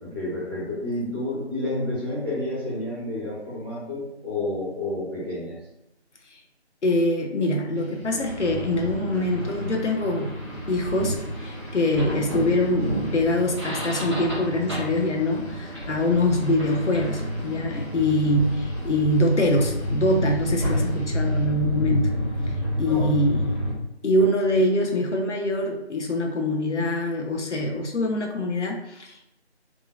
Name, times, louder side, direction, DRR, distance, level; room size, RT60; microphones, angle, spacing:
voice 1, 0.0-5.6 22.9-23.1, left 1 dB, 20° left, -12 dB, 0.9 m, -30 dB
voice 2, 6.8-10.3 10.7-22.1 22.8-23.5 24.0-29.3, left 1 dB, 85° left, 2 dB, 0.8 m, -24 dB
sound 1, 7.7-21.4, equal, 60° left, 1.1 m, -40 dB
sound 2, 8.1-23.7, equal, 25° right, 1.0 m, -30 dB
3.6 x 3.0 x 2.4 m, 0.84 s
figure-of-eight pair, 175°, 34 cm